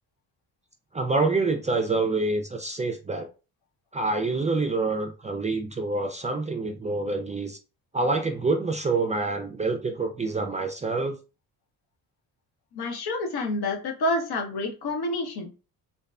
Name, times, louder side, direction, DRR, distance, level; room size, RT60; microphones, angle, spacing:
voice 1, 0.9-3.3 3.9-7.6 7.9-11.2, right 3 dB, 20° right, 4 dB, 0.3 m, -26 dB
voice 2, 12.7-15.5, left 2 dB, 65° left, 2 dB, 1.0 m, -28 dB
2.7 x 2.2 x 2.3 m, 0.32 s
supercardioid pair, 65°, 41 cm